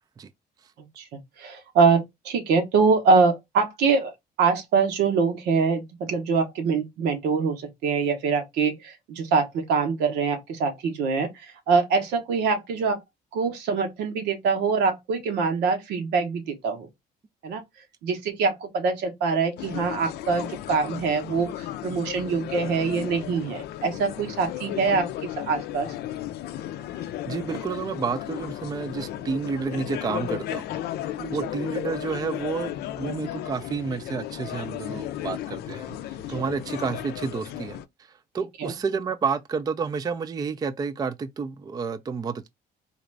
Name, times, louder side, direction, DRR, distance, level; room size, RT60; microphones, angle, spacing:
voice 1, 1.4-4.1 4.4-13.0 13.3-16.9 17.4-17.6 18.0-25.9 31.2-31.5 38.6-38.7, right 5 dB, 85° right, 1.1 m, -24 dB
sound 1, 19.6-37.8, left 12 dB, 70° left, 0.5 m, -34 dB
voice 2, 27.3-30.8 31.3-37.8 38.3-42.5, right 5 dB, 25° right, 0.4 m, -30 dB
3.9 x 2.5 x 3.2 m
cardioid pair, 110°, 17 cm